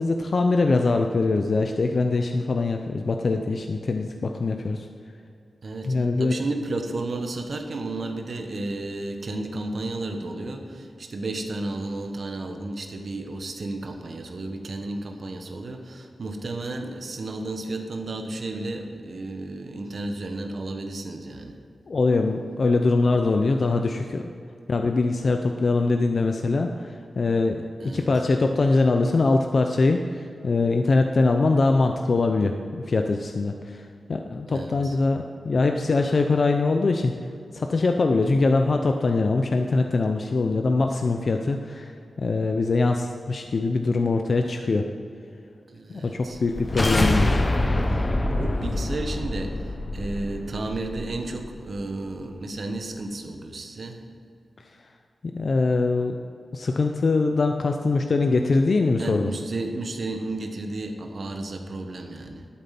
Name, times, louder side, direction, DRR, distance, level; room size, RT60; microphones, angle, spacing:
voice 1, 0.0-4.9 5.9-6.3 21.9-24.3 24.7-37.1 37.5-41.9 42.2-44.9 45.9-47.4 55.2-56.1 56.5-59.3, left 3 dB, 50° left, 4 dB, 0.6 m, -23 dB
voice 2, 5.6-21.6 27.8-28.1 34.5-35.0 45.7-46.4 47.8-54.0 59.0-62.5, right 2 dB, 55° right, 4 dB, 1.3 m, -33 dB
sound 1, 46.4-51.5, left 1 dB, 25° left, 0.9 m, -25 dB
12.0 x 8.8 x 5.9 m, 2.4 s
wide cardioid pair, 110°, 0 cm